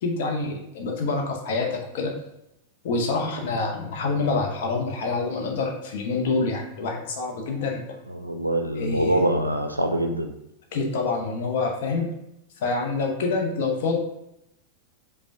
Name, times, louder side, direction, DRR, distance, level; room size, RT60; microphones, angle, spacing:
voice 1, 0.0-2.1 2.8-7.8 8.7-9.3 10.7-12.1 12.6-14.0, left 3 dB, 55° left, 1 dB, 0.8 m, -26 dB
voice 2, 8.1-10.3, right 1 dB, 85° right, 5 dB, 0.4 m, -24 dB
5.0 x 2.3 x 3.4 m, 0.83 s
figure-of-eight pair, 90°, 0 cm